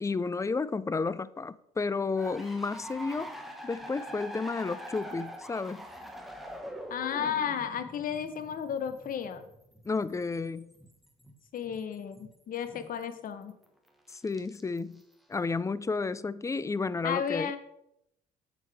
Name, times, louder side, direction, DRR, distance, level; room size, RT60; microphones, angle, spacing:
voice 1, 0.0-3.4 3.6-5.9 9.9-10.7 14.1-15.0 15.3-17.6, left 4 dB, 20° left, 0.4 m, -32 dB
sound 1, 2.2-13.3 13.6-15.0, equal, ahead, 1.4 m, -44 dB
voice 2, 6.9-9.4 11.5-13.5 17.0-17.6, left 8 dB, 55° left, 1.0 m, -33 dB
7.5 x 7.2 x 3.5 m
supercardioid pair, 75°, 17 cm